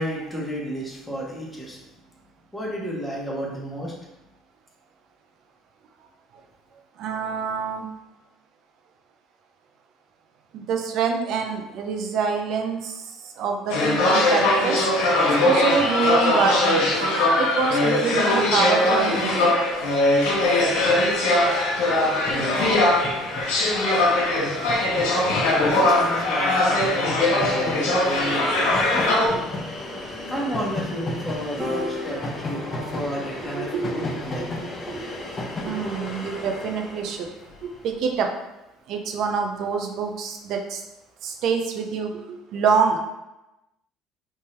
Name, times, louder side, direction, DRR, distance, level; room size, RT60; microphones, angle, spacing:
voice 1, 0.0-1.8 2.5-3.9 25.6-29.4 30.3-34.4, equal, 10° left, -4 dB, 1.2 m, -32 dB
voice 2, 7.0-7.9 10.5-13.1 13.4-14.9 15.4-16.9 17.4-19.6 29.1-29.4 33.5-34.2 34.9-35.1 35.6-37.3 37.6-38.3 38.9-40.8 41.2-43.0, right 5 dB, 65° right, 3 dB, 0.6 m, -26 dB
sound 1, 13.7-29.3, left 2 dB, 80° left, 1.0 m, -21 dB
Train, 19.6-38.0, left 2 dB, 35° left, 0.8 m, -35 dB
Piano, 31.6-38.0, left 2 dB, 20° right, 1.3 m, -38 dB
3.5 x 2.7 x 3.3 m, 0.95 s
supercardioid pair, 80°, 0 cm